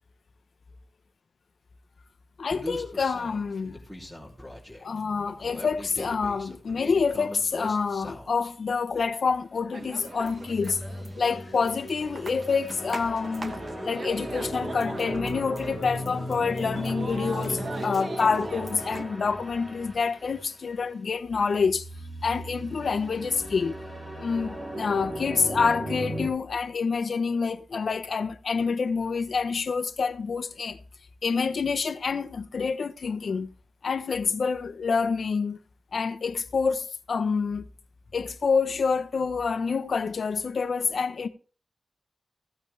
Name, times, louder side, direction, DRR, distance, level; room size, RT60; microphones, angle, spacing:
voice 1, 2.4-3.8 4.8-10.8 11.2-21.8 22.2-23.8 24.2-30.8 31.2-33.5 33.8-35.6 35.9-37.7 38.1-41.3, left 5 dB, 75° left, 0.9 m, -27 dB
Human voice, 2.5-8.5, left 1 dB, ahead, 3.1 m, -40 dB
sound 1, 9.7-19.0, right 3 dB, 45° right, 0.9 m, -41 dB
sound 2, 10.3-20.5 21.5-26.3, equal, 25° right, 4.9 m, -36 dB
15.5 x 8.6 x 3.4 m
wide cardioid pair, 125°, 0 cm